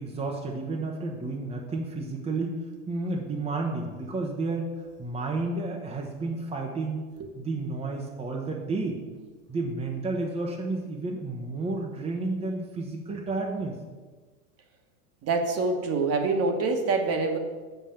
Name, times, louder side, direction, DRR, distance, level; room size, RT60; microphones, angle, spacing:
voice 1, 0.0-2.6 2.9-4.7 5.0-7.0 7.4-9.0 9.5-13.7, right 3 dB, 15° right, 0 dB, 0.9 m, -31 dB
voice 2, 15.2-17.4, right 3 dB, 35° right, 5 dB, 1.3 m, -25 dB
6.2 x 5.7 x 7.1 m, 1.3 s
supercardioid pair, 120°, 43 cm